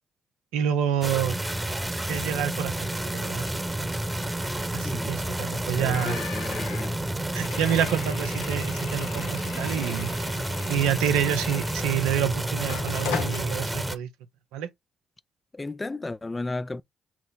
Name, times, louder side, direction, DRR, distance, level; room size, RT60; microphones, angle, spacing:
voice 1, 0.5-1.4 2.1-3.5 4.7-6.2 7.3-10.1 10.7-14.1 14.5-14.7, right 9 dB, 85° right, 0.6 m, -27 dB
sound 1, 1.0-14.0, right 1 dB, 15° right, 0.9 m, -30 dB
voice 2, 4.7-5.2 5.8-7.1 15.5-16.8, left 2 dB, 25° left, 0.4 m, -34 dB
sound 2, 5.9-12.2 12.6-13.4, left 7 dB, 85° left, 0.7 m, -38 dB
5.9 x 2.0 x 3.9 m
hypercardioid pair, 45°, 0 cm